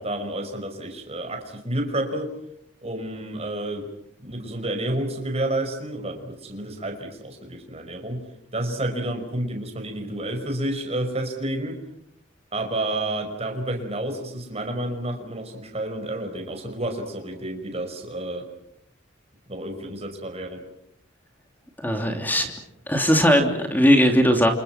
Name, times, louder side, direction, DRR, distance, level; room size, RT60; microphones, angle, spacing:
voice 1, 0.0-2.3 2.8-3.8 4.2-8.2 8.5-11.8 12.5-18.5 19.5-20.6, right 1 dB, 30° right, 5 dB, 5.1 m, -30 dB
voice 2, 21.8-22.5 22.9-24.5, equal, 10° left, 4 dB, 3.0 m, -19 dB
29.5 x 27.5 x 6.0 m, 0.74 s
head